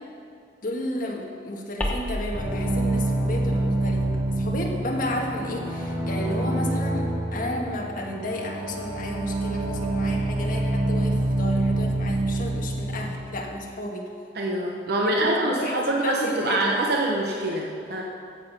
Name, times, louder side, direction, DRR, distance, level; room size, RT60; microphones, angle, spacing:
voice 1, 0.6-4.1 4.4-14.0 15.0-16.7, left 1 dB, 50° left, -1 dB, 1.6 m, -32 dB
sound 1, 1.8-6.6, left 1 dB, 10° left, 1.4 m, -36 dB
sound 2, 2.3-13.1, right 1 dB, 15° right, 2.4 m, -26 dB
voice 2, 14.3-18.0, right 1 dB, 60° right, -1 dB, 1.0 m, -25 dB
15.5 x 7.4 x 5.4 m, 2.4 s
head